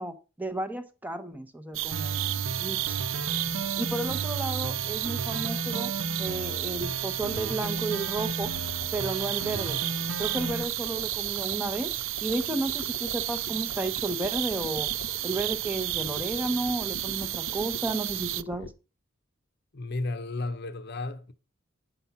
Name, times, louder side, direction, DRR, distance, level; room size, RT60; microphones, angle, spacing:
voice 1, 0.0-3.0 3.8-5.9 6.2-8.5 8.9-9.8 10.2-14.9 15.2-18.7, right 2 dB, 10° right, 0.7 m, -33 dB
sound 1, 1.7-18.4, right 16 dB, 65° right, 0.4 m, -32 dB
sound 2, 1.9-10.6, right 2 dB, 80° right, 1.2 m, -34 dB
sound 3, 2.9-18.7, left 3 dB, 85° left, 0.9 m, -45 dB
voice 2, 19.7-21.3, left 2 dB, 55° left, 0.8 m, -33 dB
9.2 x 6.0 x 5.5 m
head